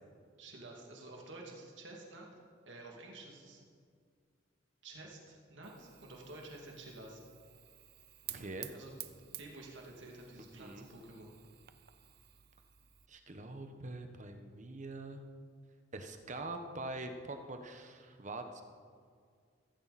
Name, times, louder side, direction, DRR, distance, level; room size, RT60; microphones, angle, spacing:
voice 1, 0.4-2.3 2.7-3.6 4.8-7.2 8.7-8.9 9.4-11.4, right 2 dB, 75° right, -1 dB, 2.4 m, -50 dB
Fire, 5.6-13.1, right 13 dB, 55° right, 0.7 m, -52 dB
voice 2, 8.3-8.7 10.4-10.9 13.1-15.2 15.9-18.6, right 2 dB, 40° right, 6 dB, 1.2 m, -44 dB
15.5 x 15.0 x 4.2 m, 2.1 s
head